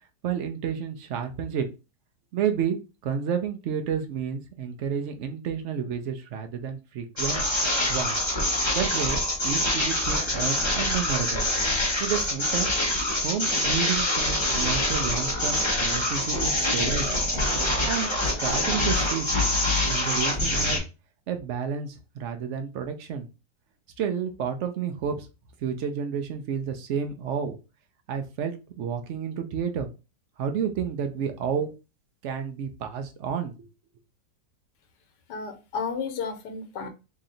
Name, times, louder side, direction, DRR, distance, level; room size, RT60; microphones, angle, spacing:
voice 1, 0.2-1.7 2.3-2.8 3.0-7.4 7.9-8.2 8.7-11.5 12.0-12.7 13.2-17.1 17.8-19.3 19.9-20.8 21.3-23.3 24.0-25.3 25.6-27.6 28.1-29.9 30.4-31.7 32.2-33.5, right 7 dB, 70° right, 6 dB, 0.7 m, -30 dB
sound 1, 7.2-20.8, left 1 dB, 20° left, 1.0 m, -25 dB
voice 2, 35.3-36.9, left 5 dB, 85° left, 7 dB, 1.4 m, -32 dB
3.1 x 2.8 x 3.8 m, 0.29 s
omnidirectional pair, 1.8 m